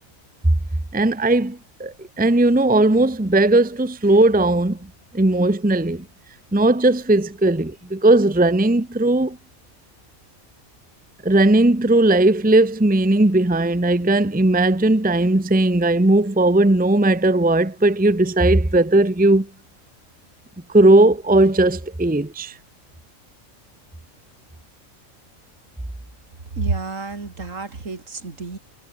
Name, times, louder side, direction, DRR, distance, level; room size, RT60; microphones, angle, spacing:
voice 1, 0.9-6.0 6.5-9.4 11.2-19.5 20.7-22.6, right 2 dB, 5° right, 1.0 m, -17 dB
voice 2, 26.6-28.6, right 4 dB, 65° right, 3.2 m, -29 dB
omnidirectional pair, 1.5 m